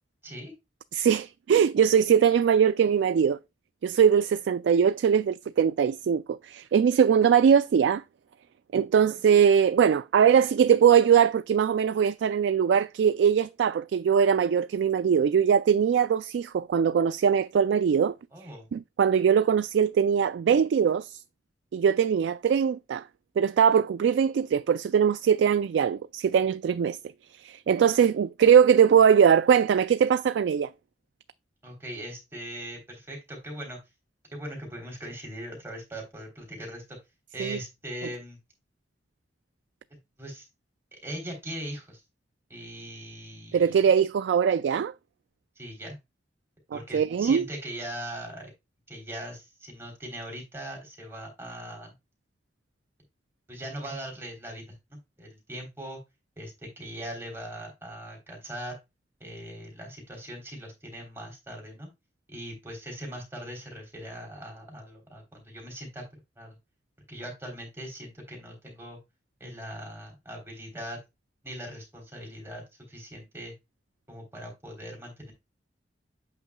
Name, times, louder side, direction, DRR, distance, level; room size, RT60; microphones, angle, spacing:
voice 1, 0.9-3.4 3.8-8.0 8.7-18.1 18.7-21.2 21.7-23.0 23.4-27.0 27.4-30.7 37.4-37.6 43.5-44.9 46.7-47.5, right 7 dB, 90° right, 0.3 m, -21 dB
voice 2, 18.3-18.7 31.6-33.8 34.3-37.0 37.3-38.4 40.2-40.4 40.9-42.0 42.5-43.8 45.5-46.0 46.7-48.5 48.9-51.9 53.5-56.0 56.4-58.8 59.2-61.9 62.3-66.0 66.4-66.6 67.1-69.0 69.4-71.0 71.4-73.5 74.1-75.3, right 1 dB, 15° right, 3.4 m, -40 dB
8.2 x 6.0 x 2.3 m
head